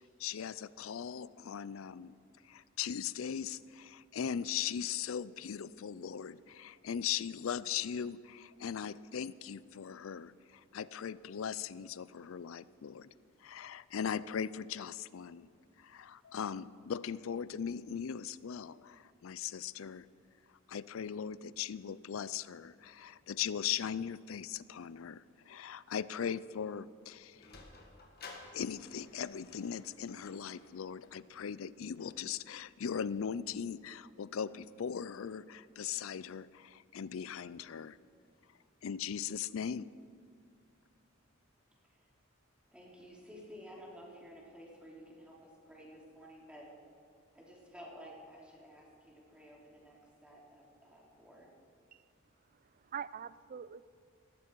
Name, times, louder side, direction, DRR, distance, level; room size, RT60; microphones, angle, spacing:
voice 1, 0.2-2.1 2.4-13.1 13.4-15.5 15.8-20.1 20.7-27.5 28.5-38.0 38.8-39.9, left 8 dB, 75° left, 19 dB, 0.4 m, -39 dB
Sliding door, 27.1-33.5, left 3 dB, 50° left, 1.9 m, -56 dB
voice 2, 42.7-46.7 47.3-51.5, equal, 5° right, -3 dB, 3.1 m, -53 dB
voice 3, 52.5-53.9, right 8 dB, 45° right, 18 dB, 0.4 m, -45 dB
18.5 x 14.0 x 4.6 m, 2.3 s
head